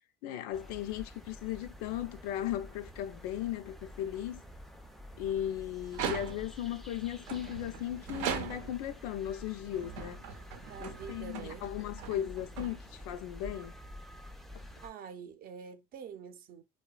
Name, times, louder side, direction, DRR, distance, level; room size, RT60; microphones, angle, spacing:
voice 1, 0.2-4.4 5.2-10.3 10.8-13.7, left 12 dB, 90° left, 0.4 m, -37 dB
sound 1, 0.5-14.9, left 1 dB, ahead, 0.3 m, -49 dB
sound 2, 5.8-6.7 7.2-8.9 9.6-13.2, right 8 dB, 90° right, 0.6 m, -40 dB
voice 2, 10.7-11.7 14.8-16.6, right 7 dB, 50° right, 0.6 m, -46 dB
2.9 x 2.2 x 2.3 m
cardioid pair, 110°, 20 cm